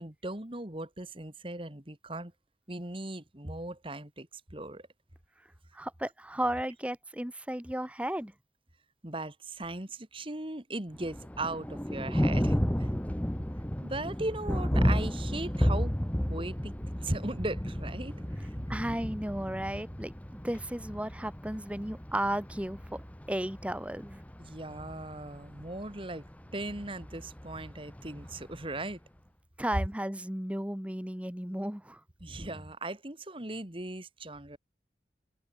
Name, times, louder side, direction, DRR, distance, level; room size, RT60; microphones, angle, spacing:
voice 1, 0.0-2.3 2.7-4.9 9.0-12.9 13.8-15.9 16.3-16.7 17.0-18.1 18.4-18.5 24.4-26.3 26.5-29.0 32.2-34.6, right 2 dB, 30° right, 2.4 m, -38 dB
voice 2, 5.7-8.3 18.7-20.1 20.4-24.2 29.6-32.0, right 1 dB, 5° right, 1.4 m, -34 dB
Thunder, 10.9-28.9, equal, 10° left, 1.0 m, -33 dB
head